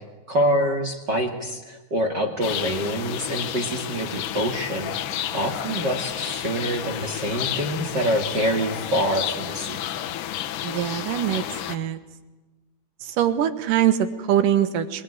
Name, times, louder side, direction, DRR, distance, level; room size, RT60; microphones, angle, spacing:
voice 1, 0.3-5.0 5.3-9.8, equal, 40° right, 3 dB, 1.7 m, -26 dB
sound 1, 2.4-11.8, left 11 dB, 75° left, 2.0 m, -31 dB
voice 2, 10.6-11.4 11.7-12.0 13.0-15.0, right 10 dB, 65° right, 12 dB, 2.4 m, -23 dB
26.0 x 22.0 x 10.0 m, 1.2 s
omnidirectional pair, 5.2 m